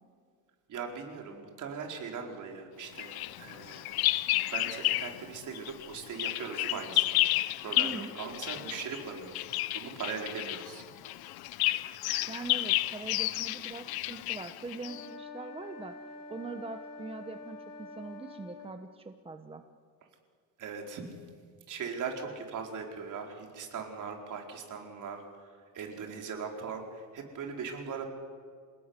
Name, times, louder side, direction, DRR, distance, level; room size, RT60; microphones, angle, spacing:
voice 1, 0.7-4.0 4.5-7.2 7.6-9.5 9.7-10.8 20.6-21.1 21.7-25.5 25.7-28.0, right 5 dB, 55° right, 2 dB, 4.7 m, -40 dB
Bird vocalization bird call bird song, 3.0-5.2 5.5-15.1, left 16 dB, 75° left, 0.9 m, -31 dB
voice 2, 7.8-8.1 12.3-19.6, right 3 dB, 15° right, 7 dB, 1.1 m, -42 dB
sound 1, 14.8-18.7, left 3 dB, 60° left, 3.7 m, -46 dB
28.5 x 18.0 x 9.8 m, 2.1 s
cardioid pair, 140°, 37 cm